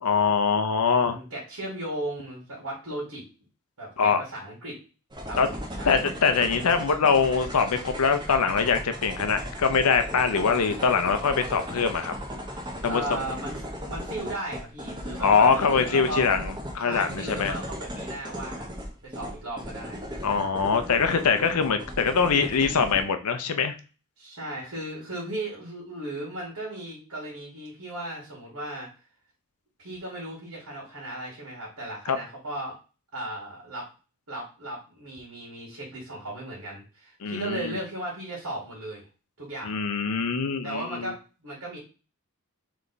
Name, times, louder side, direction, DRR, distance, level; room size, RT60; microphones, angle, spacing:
voice 1, 0.0-1.2 4.0-4.2 5.4-5.5 5.9-12.1 12.8-13.0 15.2-17.6 20.2-23.8 32.1-32.2 37.2-37.8 39.6-41.1, left 5 dB, 80° left, 8 dB, 0.6 m, -23 dB
voice 2, 1.0-3.2 3.8-4.8 5.2-6.1 12.8-16.3 16.8-18.8 19.0-20.0 24.2-28.9 29.8-32.8 33.1-33.9 34.3-39.0 39.4-39.7 40.6-41.8, right 1 dB, 80° right, -4 dB, 1.9 m, -36 dB
sound 1, 5.1-23.0, equal, 20° right, 0.9 m, -37 dB
3.4 x 3.2 x 3.9 m, 0.34 s
head